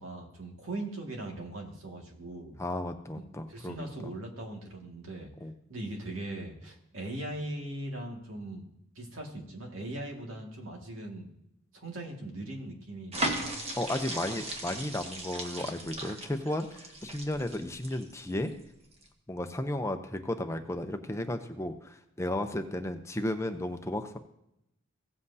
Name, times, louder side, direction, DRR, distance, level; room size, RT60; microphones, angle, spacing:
voice 1, 0.0-2.6 3.2-5.3 5.7-8.7 9.0-11.3 11.7-13.5, right 1 dB, 85° right, 1 dB, 2.0 m, -40 dB
voice 2, 2.6-3.9 5.4-5.5 13.8-18.5 19.3-24.2, left 1 dB, 15° left, 7 dB, 0.6 m, -34 dB
sound 1, 13.1-18.5 18.9-19.1, right 1 dB, 30° right, 1.2 m, -37 dB
16.5 x 7.6 x 2.7 m, 0.82 s
head